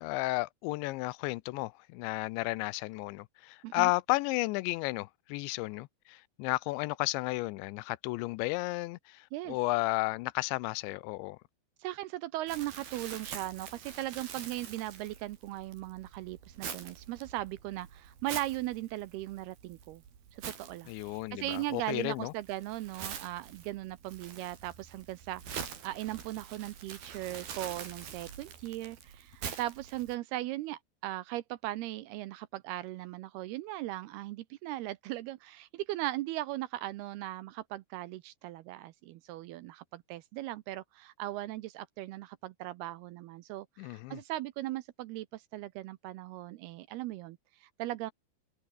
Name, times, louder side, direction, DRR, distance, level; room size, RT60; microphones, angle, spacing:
voice 1, 0.0-11.4 20.9-22.3 43.8-44.2, left 22 dB, 90° left, 2.9 m, -33 dB
voice 2, 11.8-20.0 20.3-48.1, right 16 dB, 80° right, 2.4 m, -38 dB
Crumpling crinkling, 12.5-30.2, right 7 dB, 60° right, 5.2 m, -45 dB
open air
omnidirectional pair, 5.1 m